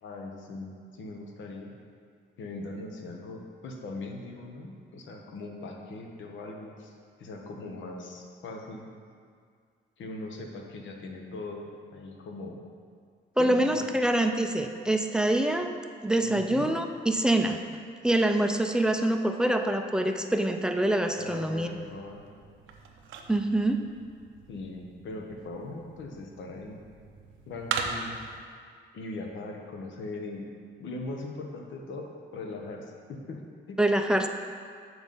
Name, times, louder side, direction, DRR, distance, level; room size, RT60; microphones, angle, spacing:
voice 1, 0.0-1.7 2.4-6.9 7.2-8.9 10.0-12.6 13.4-13.9 16.2-16.7 21.2-22.2 24.5-26.8 27.5-28.2 28.9-30.5 30.8-33.8, left 2 dB, 70° left, 2 dB, 1.0 m, -40 dB
voice 2, 13.4-15.8 16.0-17.6 18.0-21.7 23.3-23.8 33.8-34.3, right 1 dB, 5° right, 5 dB, 0.4 m, -25 dB
sound 1, 21.5-28.4, right 5 dB, 85° right, 0.7 m, -40 dB
7.2 x 4.0 x 5.5 m, 2.1 s
cardioid pair, 90°, 20 cm